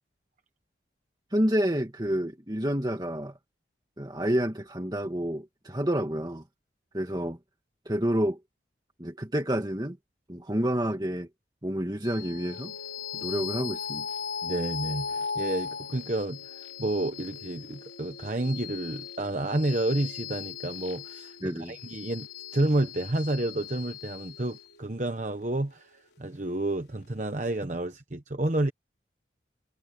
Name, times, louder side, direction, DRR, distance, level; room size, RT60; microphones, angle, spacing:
voice 1, 1.3-3.3 4.0-6.4 6.9-7.4 7.9-8.4 9.0-10.0 10.3-11.3 11.6-12.7 13.1-14.1 21.4-21.7, equal, 20° right, 2.0 m, -29 dB
sound 1, 12.0-26.8, left 6 dB, 65° left, 4.0 m, -38 dB
voice 2, 14.4-28.7, right 1 dB, 40° right, 1.1 m, -30 dB
head